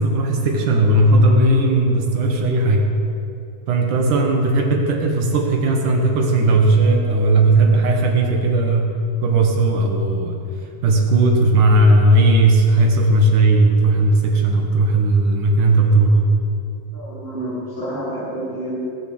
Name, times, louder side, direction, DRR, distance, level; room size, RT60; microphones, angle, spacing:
voice 1, 0.0-2.9 3.7-8.9 9.2-10.4 10.8-16.3, right 2 dB, 65° right, 2 dB, 2.7 m, -16 dB
voice 2, 16.9-18.8, right 1 dB, 5° right, -7 dB, 3.0 m, -29 dB
20.5 x 6.9 x 7.8 m, 2.8 s
omnidirectional pair, 4.2 m